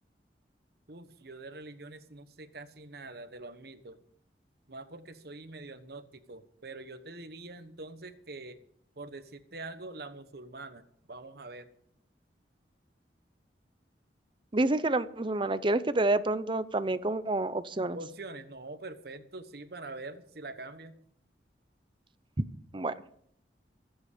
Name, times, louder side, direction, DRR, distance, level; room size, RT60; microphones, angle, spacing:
voice 1, 0.9-4.0 4.7-8.6 9.0-10.8 11.1-11.7 17.9-20.9, right 2 dB, 60° right, 10 dB, 1.2 m, -44 dB
voice 2, 14.5-18.0 22.4-22.5 22.7-23.0, right 2 dB, 30° right, 14 dB, 0.7 m, -28 dB
24.0 x 8.1 x 5.1 m, 0.67 s
head